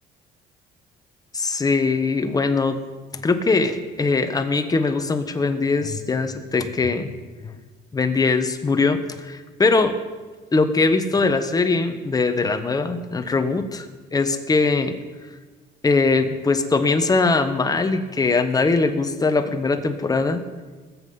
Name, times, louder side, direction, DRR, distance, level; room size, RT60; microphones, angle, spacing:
voice 1, 1.3-2.8 3.2-7.1 7.4-7.5 7.9-10.0 10.5-13.8 14.1-15.0 15.8-20.4, left 3 dB, 20° left, 8 dB, 1.2 m, -21 dB
20.0 x 7.7 x 5.5 m, 1.3 s
cardioid pair, 110°, 17 cm